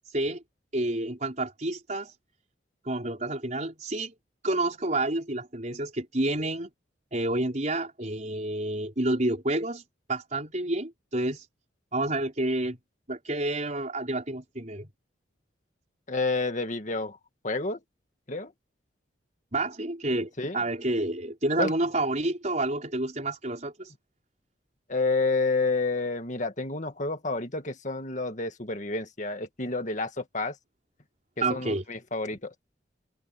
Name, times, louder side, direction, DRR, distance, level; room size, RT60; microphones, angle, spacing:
voice 1, 0.1-0.4 0.7-2.1 2.8-4.1 4.4-6.7 7.1-9.8 10.1-11.5 11.9-12.8 13.1-14.9 19.5-23.9 31.4-31.8, right 2 dB, 40° right, 4.7 m, -29 dB
voice 2, 16.1-17.2 17.4-17.8 18.3-18.5 20.4-20.6 21.6-21.7 24.9-30.6 31.5-32.5, left 3 dB, 40° left, 1.9 m, -29 dB
head